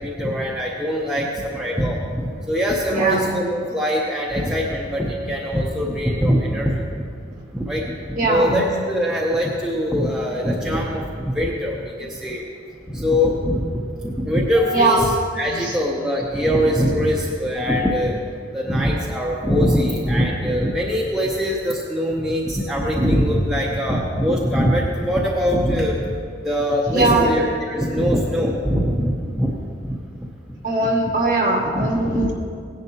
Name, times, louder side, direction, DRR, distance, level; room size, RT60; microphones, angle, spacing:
voice 1, 0.0-7.0 7.5-7.8 8.2-12.4 12.9-13.7 14.0-18.2 18.5-26.1 26.4-29.5 30.2-30.3 31.7-32.3, equal, 5° right, -4 dB, 0.7 m, -22 dB
voice 2, 2.9-3.2 8.2-8.6 14.7-15.0 15.6-15.7 18.7-18.8 26.9-27.4 30.6-32.3, right 2 dB, 40° right, -3 dB, 2.1 m, -20 dB
16.5 x 10.5 x 2.9 m, 2.3 s
head